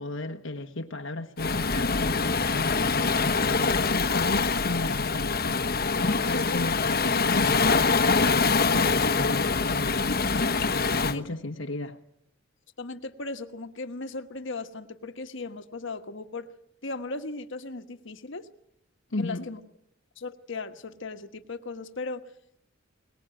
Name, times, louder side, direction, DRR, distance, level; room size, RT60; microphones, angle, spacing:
voice 1, 0.0-2.8 3.4-5.6 6.2-8.0 8.3-10.0 10.7-12.0 19.1-19.5, left 2 dB, 80° left, 1.2 m, -34 dB
Waves surf, 1.4-11.2, left 4 dB, 50° left, 1.1 m, -24 dB
voice 2, 6.3-6.8 11.1-11.2 12.8-16.5 16.8-18.5 19.2-19.6 20.2-22.3, left 3 dB, 65° left, 1.4 m, -37 dB
22.5 x 20.0 x 9.0 m
head